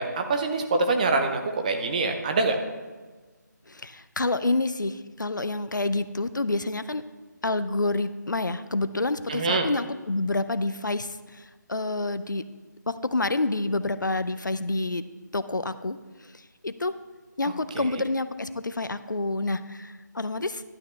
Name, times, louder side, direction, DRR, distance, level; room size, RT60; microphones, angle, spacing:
voice 1, 0.0-2.6 9.3-9.7 17.7-18.0, right 3 dB, 25° right, 4 dB, 0.7 m, -25 dB
voice 2, 3.7-7.0 7.4-12.4 12.9-15.0 15.3-16.9 17.4-20.6, left 2 dB, 75° left, 12 dB, 0.6 m, -28 dB
11.5 x 9.2 x 3.2 m, 1.3 s
figure-of-eight pair, 155°, 10 cm